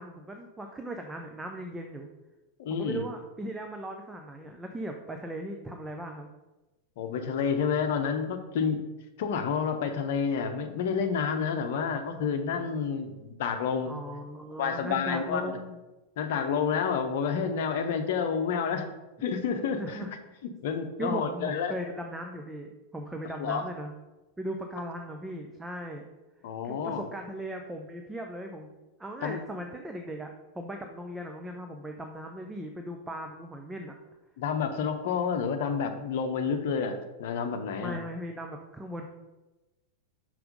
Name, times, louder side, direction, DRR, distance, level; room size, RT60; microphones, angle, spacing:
voice 1, 0.0-2.1 2.7-6.3 13.9-15.8 19.8-20.1 21.0-23.9 24.4-26.0 26.6-28.7 29.0-33.9 37.8-39.0, right 1 dB, 10° right, 3 dB, 0.6 m, -38 dB
voice 2, 2.6-3.0 7.0-8.8 9.2-13.9 14.6-15.5 16.2-18.9 19.2-20.1 20.6-21.7 23.4-23.6 26.4-27.0 29.2-29.4 34.4-38.0, left 6 dB, 55° left, 7 dB, 0.8 m, -29 dB
5.8 x 4.9 x 5.3 m, 1.1 s
figure-of-eight pair, 90°, 0 cm